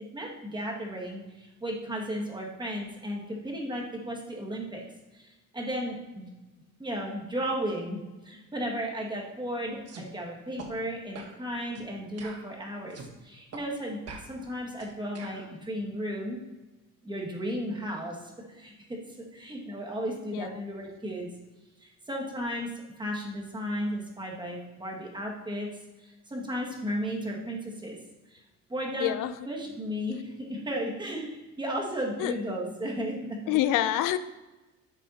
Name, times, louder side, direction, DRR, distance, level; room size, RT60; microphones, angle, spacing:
voice 1, 0.1-4.8 5.1-6.3 6.8-16.4 17.0-18.2 18.5-18.7 19.3-21.3 21.8-22.7 23.0-25.7 26.0-28.0 28.3-28.4 28.7-29.2 29.5-33.9, equal, 15° right, -1 dB, 1.9 m, -34 dB
sound 1, 9.9-10.1 10.6-10.7 11.1-11.4 11.7-11.9 12.2-13.1 13.5-13.7 14.1-15.5, right 4 dB, 50° right, 1.4 m, -44 dB
voice 2, 29.0-29.3 32.2-32.3 33.5-34.2, left 13 dB, 75° left, 12 dB, 0.5 m, -26 dB
11.5 x 7.1 x 2.8 m, 1.1 s
cardioid pair, 115°, 33 cm